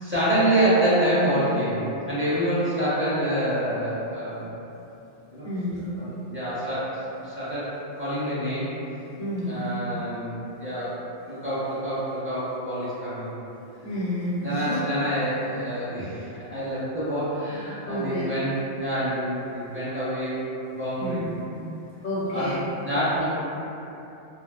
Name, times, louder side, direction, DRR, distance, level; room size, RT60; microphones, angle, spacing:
voice 1, 0.0-1.8 2.1-4.5 5.3-5.5 5.9-7.0 7.2-8.7 9.4-11.0 11.2-13.3 14.4-20.3 20.7-21.2 22.3-22.6 22.8-23.2, right 1 dB, 15° right, -13 dB, 0.7 m, -26 dB
voice 2, 5.4-5.9 9.2-9.6 13.8-14.8 17.9-18.3 21.0-21.3 22.0-22.6, equal, 60° left, -9 dB, 0.7 m, -30 dB
2.7 x 2.7 x 2.3 m, 2.9 s
omnidirectional pair, 1.1 m